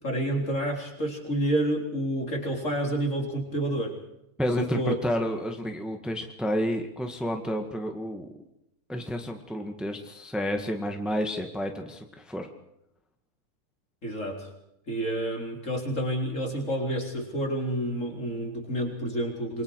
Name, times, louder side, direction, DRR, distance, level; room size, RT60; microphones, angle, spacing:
voice 1, 0.0-4.0 4.6-4.9 14.0-14.5 14.9-19.6, right 1 dB, 20° left, 1 dB, 4.2 m, -29 dB
voice 2, 4.4-8.3 8.9-12.5, equal, ahead, 4 dB, 0.6 m, -30 dB
27.5 x 23.5 x 4.9 m, 0.82 s
omnidirectional pair, 4.0 m